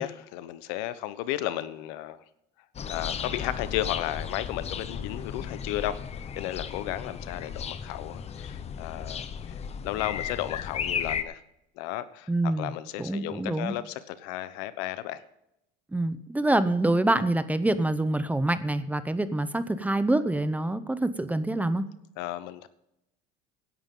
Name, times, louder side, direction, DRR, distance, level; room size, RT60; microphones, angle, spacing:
voice 1, 0.0-2.2 2.9-6.0 6.4-11.4 11.8-12.3 12.6-15.2 22.2-22.7, left 13 dB, 85° left, 14 dB, 1.0 m, -34 dB
sound 1, 2.7-11.2, left 7 dB, 30° left, 1.0 m, -35 dB
voice 2, 12.3-12.7 13.0-13.7 15.9-21.8, right 2 dB, 5° right, 13 dB, 0.7 m, -26 dB
16.5 x 11.0 x 3.8 m, 0.83 s
cardioid pair, 125°, 21 cm